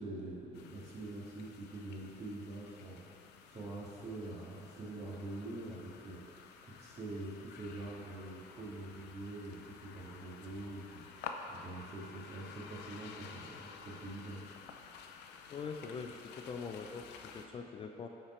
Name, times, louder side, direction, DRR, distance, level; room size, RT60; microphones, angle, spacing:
voice 1, 0.0-14.5, right 2 dB, 40° right, -5 dB, 1.8 m, -45 dB
sound 1, 0.5-17.5, left 6 dB, 80° left, 0.5 m, -52 dB
voice 2, 15.5-18.1, left 5 dB, 30° left, 4 dB, 0.4 m, -43 dB
8.7 x 4.5 x 4.4 m, 2.6 s
cardioid pair, 110°, 17 cm